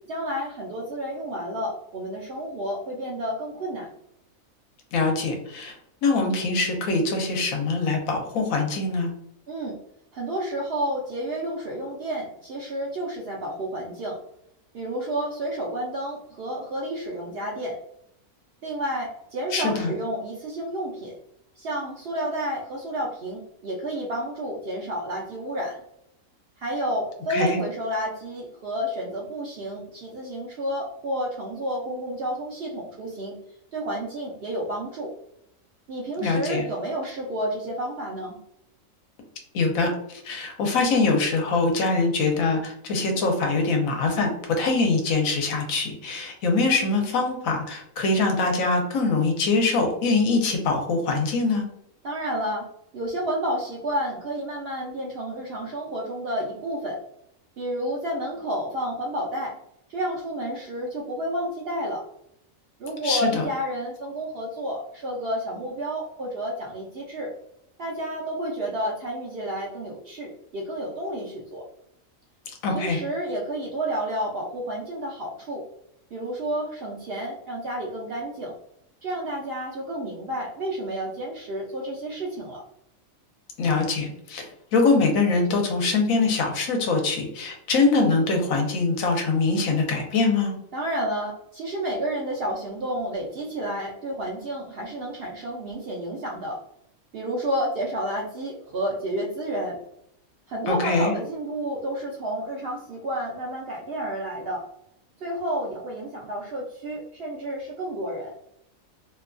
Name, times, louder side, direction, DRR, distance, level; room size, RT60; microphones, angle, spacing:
voice 1, 0.1-3.9 9.5-9.8 10.1-14.2 14.7-17.8 18.6-21.1 21.6-25.8 26.6-33.4 33.7-35.1 35.9-38.4 52.0-52.7 52.9-57.0 57.6-59.6 59.9-62.0 62.8-67.3 67.8-71.6 72.7-75.6 76.1-78.5 79.0-82.6 90.7-96.6 97.1-99.8 100.5-104.6 105.2-108.3, right 1 dB, 60° right, -2 dB, 0.6 m, -30 dB
voice 2, 4.9-5.7 6.0-9.1 19.5-19.9 27.3-27.6 36.2-36.6 39.5-44.3 44.6-51.6 63.0-63.4 72.6-73.0 83.6-90.5 100.7-101.1, left 3 dB, 80° left, 2 dB, 1.1 m, -23 dB
2.7 x 2.2 x 2.4 m, 0.75 s
omnidirectional pair, 1.5 m